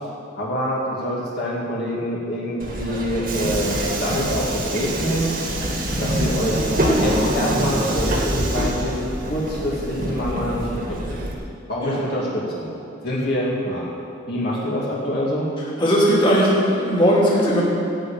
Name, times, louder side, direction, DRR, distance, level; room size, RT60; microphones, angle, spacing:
voice 1, 0.4-5.3 6.0-10.6 10.9-11.2 11.7-12.7 13.0-13.9 14.3-15.5, equal, 50° left, -6 dB, 2.1 m, -25 dB
Subway metro underground, 2.6-11.3, right 1 dB, 45° right, 1.8 m, -24 dB
voice 2, 15.8-17.6, equal, 25° left, -6 dB, 2.6 m, -18 dB
15.5 x 5.3 x 8.9 m, 2.8 s
head